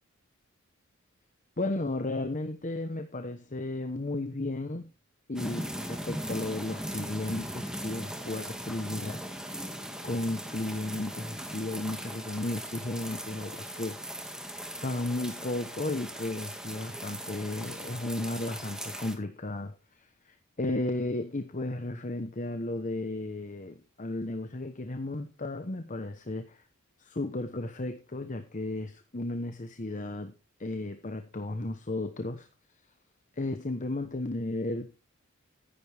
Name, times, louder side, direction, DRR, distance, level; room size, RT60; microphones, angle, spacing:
voice 1, 1.6-4.9 5.3-9.6 10.0-14.2 14.8-26.6 27.0-30.3 30.6-32.5 33.4-34.9, left 2 dB, 35° left, 1.0 m, -34 dB
sound 1, 5.4-19.2, equal, 5° right, 1.8 m, -39 dB
14.0 x 10.5 x 3.5 m
head